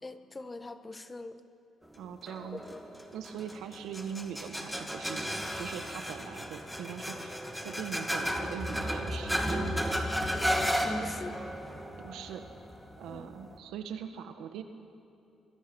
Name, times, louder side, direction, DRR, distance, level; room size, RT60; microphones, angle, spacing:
voice 1, 0.0-1.4 2.7-2.8 9.1-9.3 10.8-11.4 13.1-13.3, left 2 dB, 25° left, 9 dB, 1.2 m, -43 dB
voice 2, 2.0-2.6 3.1-7.4 7.6-10.2 12.0-12.4 13.0-14.6, right 8 dB, 85° right, 7 dB, 1.6 m, -41 dB
sound 1, 2.3-13.6, equal, ahead, 2.3 m, -34 dB
26.0 x 21.5 x 5.5 m, 2.8 s
cardioid pair, 90°, 0 cm